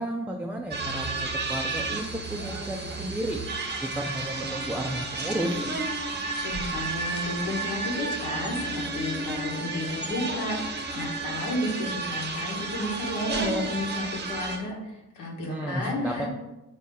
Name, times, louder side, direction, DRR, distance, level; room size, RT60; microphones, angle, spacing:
voice 1, 0.0-3.4 3.8-5.7 15.5-16.3, right 1 dB, 5° right, 0 dB, 0.3 m, -32 dB
sound 1, 0.7-14.6, right 3 dB, 35° right, 0.7 m, -32 dB
sound 2, 2.3-5.9, right 5 dB, 70° right, 0.6 m, -48 dB
voice 2, 6.3-16.3, left 1 dB, 80° left, -2 dB, 1.2 m, -32 dB
4.1 x 2.8 x 3.7 m, 0.98 s
cardioid pair, 90°, 30 cm